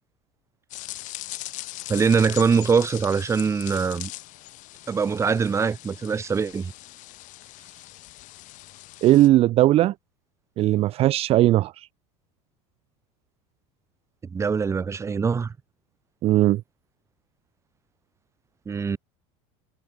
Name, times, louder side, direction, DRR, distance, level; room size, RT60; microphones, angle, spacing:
sound 1, 0.7-9.3, left 18 dB, 55° left, 5.3 m, -40 dB
voice 1, 1.9-4.1 4.9-6.7 14.3-15.5 18.7-19.0, right 5 dB, 20° right, 1.1 m, -23 dB
voice 2, 9.0-9.9 10.6-11.9 16.2-16.6, right 15 dB, 40° right, 0.5 m, -18 dB
supercardioid pair, 130°, 16 cm